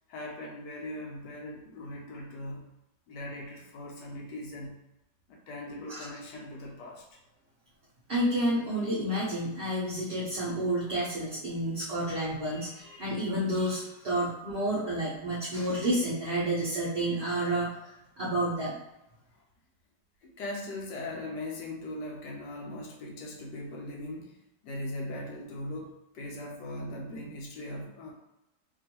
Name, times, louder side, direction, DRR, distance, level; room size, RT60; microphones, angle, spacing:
voice 1, 0.1-2.6 3.1-4.7 5.3-7.0 20.4-24.4 24.6-28.1, left 1 dB, 75° left, -1 dB, 1.2 m, -39 dB
voice 2, 8.1-17.8 18.2-18.8, right 1 dB, 50° right, -8 dB, 0.8 m, -30 dB
3.0 x 2.6 x 2.8 m, 0.90 s
omnidirectional pair, 1.9 m